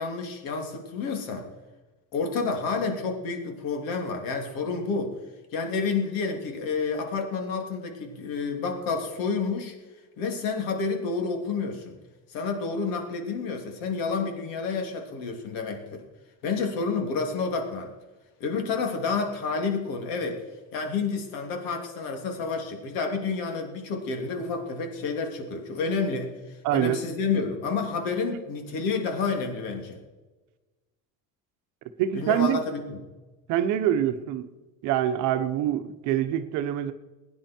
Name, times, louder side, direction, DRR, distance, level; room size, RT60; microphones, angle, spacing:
voice 1, 0.0-1.5 2.1-5.2 5.5-9.7 10.2-12.0 12.3-16.0 16.4-17.9 18.4-20.4 20.7-30.0 32.1-33.0, left 4 dB, 60° left, 3 dB, 2.9 m, -29 dB
voice 2, 26.6-27.0 32.0-32.6 33.5-34.5 34.8-36.9, right 11 dB, 55° right, 9 dB, 1.0 m, -25 dB
20.5 x 9.8 x 4.5 m, 1.2 s
cardioid pair, 175°, 38 cm